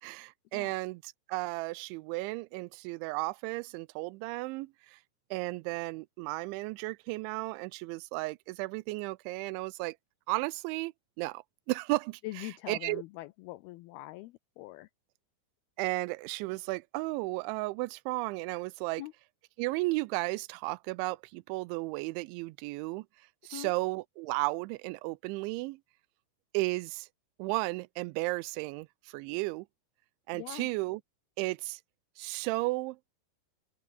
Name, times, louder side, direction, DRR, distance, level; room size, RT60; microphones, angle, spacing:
voice 1, 0.0-5.0 5.3-10.0 10.3-13.0 15.8-19.0 19.6-23.1 23.4-25.8 26.5-27.1 27.4-29.7 30.3-31.0 31.4-31.8 32.2-33.1, right 23 dB, 90° right, 3.0 m, -34 dB
voice 2, 12.2-14.9 19.0-19.1 23.5-23.7 30.3-30.7, left 18 dB, 90° left, 2.2 m, -43 dB
open air
omnidirectional pair, 5.2 m